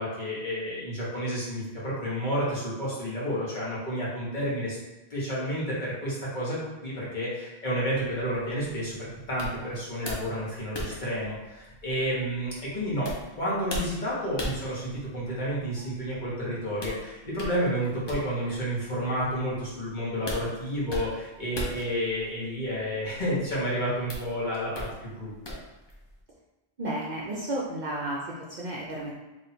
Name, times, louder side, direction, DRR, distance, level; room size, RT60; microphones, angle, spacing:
voice 1, 0.0-4.8 5.1-13.1 13.4-25.3, equal, 45° left, -8 dB, 1.4 m, -30 dB
sound 1, 7.8-26.2, equal, 30° left, 0.6 m, -41 dB
voice 2, 26.8-29.1, right 1 dB, 55° right, -3 dB, 0.6 m, -32 dB
3.1 x 2.6 x 4.2 m, 1.1 s
omnidirectional pair, 1.1 m